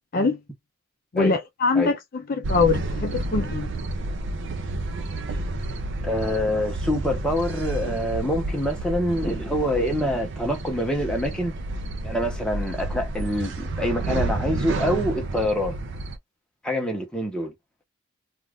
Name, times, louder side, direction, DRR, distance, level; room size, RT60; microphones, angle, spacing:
voice 1, 1.1-1.9 2.3-3.7, left 4 dB, 45° left, 0.5 m, -22 dB
sound 1, 2.4-16.2, right 2 dB, 60° right, 0.5 m, -30 dB
voice 2, 6.0-11.5 12.0-15.8 16.6-17.5, equal, 5° left, 0.8 m, -26 dB
2.4 x 2.4 x 3.4 m
head